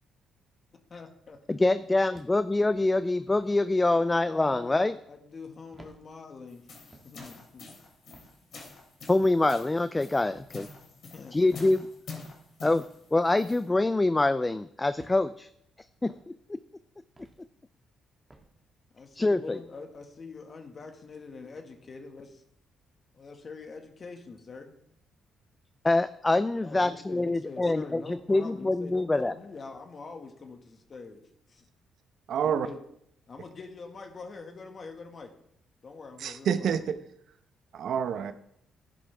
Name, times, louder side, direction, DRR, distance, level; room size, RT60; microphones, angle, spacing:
voice 1, 0.9-1.6 3.9-6.7 7.0-7.7 11.1-11.6 18.9-22.4 23.1-24.7 26.6-31.2 31.5-31.7 32.4-32.8 33.3-35.3 35.8-36.7, left 4 dB, 40° left, 5 dB, 1.7 m, -44 dB
voice 2, 1.5-4.9 9.1-10.7 11.3-11.9 12.6-12.8 13.1-15.5 16.0-16.6 19.2-19.6 25.8-29.3, left 2 dB, 15° left, 13 dB, 0.4 m, -25 dB
sound 1, 2.1-2.6 3.3-3.5 4.5-4.7 5.7-6.0 6.9-7.2 8.1-8.4 9.2-9.5 10.3-10.5 11.5-11.8 12.6-12.9 13.8-14.0 15.0-15.2 16.0-16.3 17.2-17.4 18.3-18.5, right 2 dB, 15° right, 1.6 m, -54 dB
sound 2, 6.5-13.7, left 4 dB, 60° left, 3.2 m, -46 dB
voice 3, 32.3-32.7 36.2-37.0 37.7-38.3, right 8 dB, 70° right, 11 dB, 0.8 m, -28 dB
11.5 x 10.0 x 3.5 m, 0.73 s
cardioid pair, 90°, 0 cm